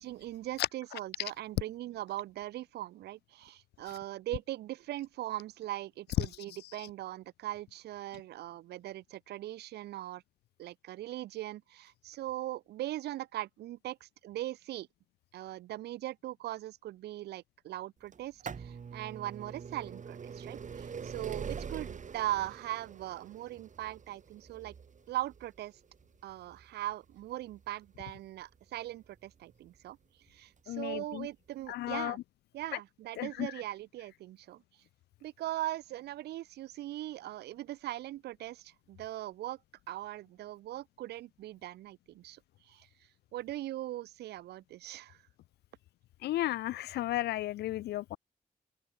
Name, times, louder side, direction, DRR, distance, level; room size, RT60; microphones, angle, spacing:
voice 1, 0.0-10.2 10.6-14.9 15.3-24.7 25.1-25.7 26.2-30.0 30.3-32.2 32.5-34.6 35.2-39.6 39.9-42.4 42.6-42.9 43.3-45.2, right 14 dB, 90° right, 2.0 m, -40 dB
sound 1, 18.1-29.8 30.6-30.7 31.6-31.7 31.9-32.0, right 6 dB, 50° right, 0.8 m, -44 dB
voice 2, 30.7-31.3 31.7-32.2 33.2-33.5 46.2-48.2, left 15 dB, 85° left, 0.5 m, -33 dB
open air
supercardioid pair, 40°, 16 cm